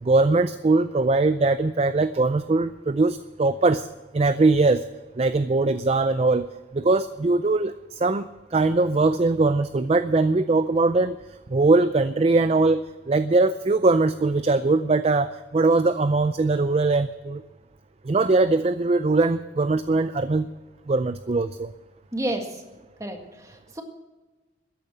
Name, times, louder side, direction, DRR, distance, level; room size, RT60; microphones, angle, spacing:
voice 1, 0.0-3.9 4.1-4.8 5.2-6.5 6.7-11.2 11.5-17.4 18.0-20.5 20.9-21.7, right 3 dB, 30° right, 12 dB, 0.4 m, -21 dB
voice 2, 22.1-22.6 23.0-23.8, right 1 dB, 15° right, 4 dB, 1.8 m, -31 dB
13.5 x 10.5 x 7.6 m, 1.2 s
head